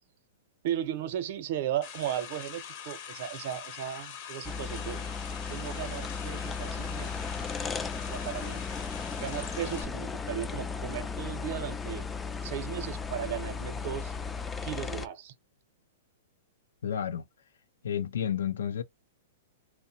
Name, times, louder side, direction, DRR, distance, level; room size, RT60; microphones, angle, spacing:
voice 1, 0.6-5.1 5.5-7.1 8.1-8.6 9.2-12.0 12.4-14.1 14.6-15.3, right 11 dB, 55° right, 0.7 m, -36 dB
sound 1, 1.8-9.8, left 8 dB, 50° left, 0.8 m, -43 dB
sound 2, 4.4-15.1, left 5 dB, 15° left, 0.3 m, -36 dB
voice 2, 16.8-17.3 17.8-18.8, left 8 dB, 80° left, 0.5 m, -31 dB
2.8 x 2.1 x 2.6 m
hypercardioid pair, 140°, 0 cm